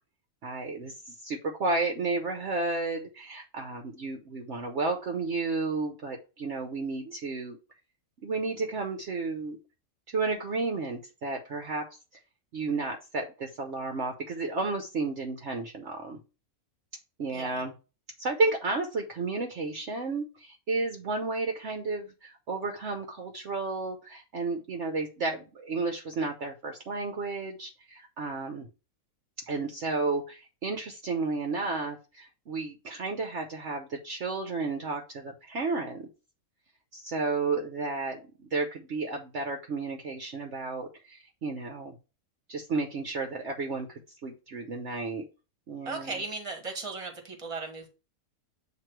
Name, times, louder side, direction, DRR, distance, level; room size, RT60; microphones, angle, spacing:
voice 1, 0.4-7.6 8.2-9.6 10.1-11.9 12.5-16.2 17.2-17.7 18.2-28.7 29.5-36.1 36.9-42.0 42.5-45.2 45.7-46.2, right 3 dB, 55° right, 1.0 m, -32 dB
voice 2, 17.3-17.6 45.8-47.9, right 3 dB, 25° right, 1.3 m, -36 dB
7.9 x 2.8 x 4.5 m
omnidirectional pair, 1.6 m